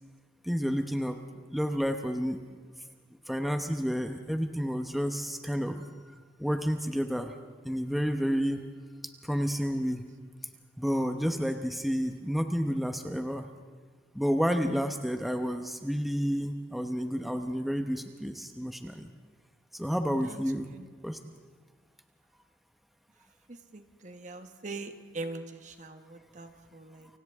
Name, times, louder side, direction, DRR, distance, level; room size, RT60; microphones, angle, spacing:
voice 1, 0.4-1.2 1.5-2.4 3.3-5.9 6.4-7.4 7.6-8.6 9.0-10.0 10.8-13.5 14.1-19.1 19.7-20.7 21.0-21.2, equal, ahead, 5 dB, 0.9 m, -30 dB
voice 2, 23.7-27.1, right 3 dB, 40° right, 7 dB, 1.3 m, -42 dB
29.0 x 25.0 x 3.6 m, 1.5 s
head